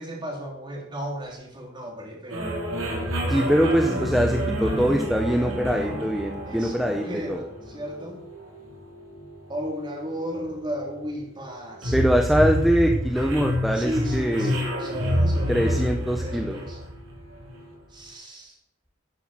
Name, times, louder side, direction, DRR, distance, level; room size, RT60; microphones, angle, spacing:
voice 1, 0.0-2.6 6.0-8.2 9.5-12.0 13.7-16.8 17.9-18.6, equal, 20° right, 0 dB, 3.1 m, -35 dB
sound 1, 2.3-17.7, equal, 75° right, 3.6 m, -29 dB
voice 2, 3.3-7.4 11.9-14.6 15.5-16.6, equal, ahead, 3 dB, 0.8 m, -23 dB
11.0 x 8.5 x 7.4 m, 0.80 s
head